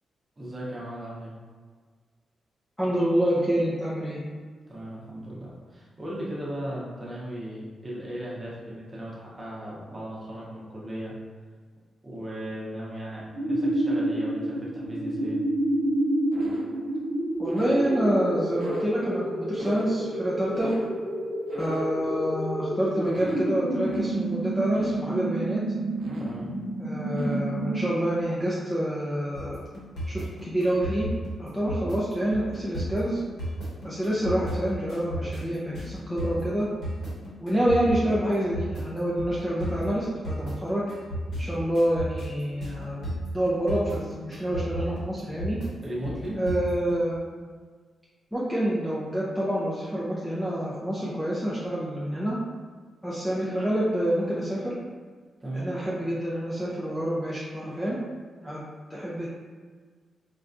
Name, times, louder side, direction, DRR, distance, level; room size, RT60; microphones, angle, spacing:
voice 1, 0.4-1.3 4.7-11.1 12.0-15.4 26.2-26.5 45.8-46.4 55.4-55.7, right 1 dB, 20° right, -6 dB, 0.8 m, -36 dB
voice 2, 2.8-4.2 17.4-20.7 21.6-25.6 26.8-29.6 30.1-31.1 31.4-33.2 33.8-36.7 37.4-40.9 41.4-43.0 43.3-45.6 46.4-47.2 48.3-52.4 53.0-54.7 55.5-58.0 58.4-58.6 58.9-59.3, equal, 5° left, -7 dB, 0.4 m, -27 dB
sound 1, 13.3-28.2, right 1 dB, 75° right, 0.5 m, -29 dB
sound 2, 29.3-46.9, equal, 80° left, 1.3 m, -34 dB
4.6 x 2.2 x 2.5 m, 1.5 s
wide cardioid pair, 175°, 0 cm